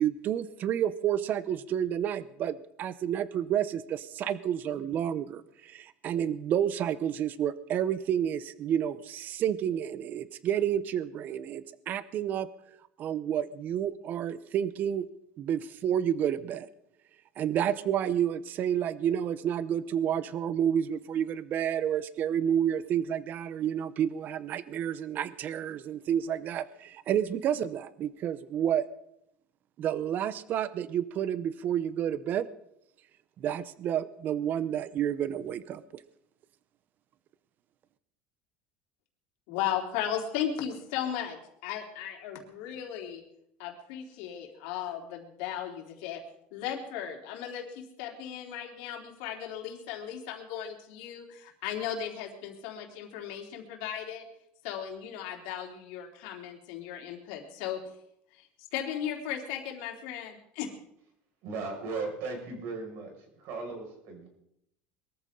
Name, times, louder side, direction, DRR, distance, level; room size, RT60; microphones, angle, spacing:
voice 1, 0.0-12.5 13.0-15.1 15.4-16.7 17.4-28.8 29.8-32.5 33.4-35.8, right 9 dB, 45° right, 16 dB, 0.7 m, -30 dB
voice 2, 39.5-43.2 43.6-46.2 46.5-54.3 54.6-57.8 58.3-58.5 58.7-60.7, left 9 dB, 80° left, 1 dB, 3.6 m, -36 dB
voice 3, 61.4-64.3, right 3 dB, 65° right, 2 dB, 5.7 m, -37 dB
22.5 x 14.0 x 3.8 m, 0.76 s
cardioid pair, 135°, 4 cm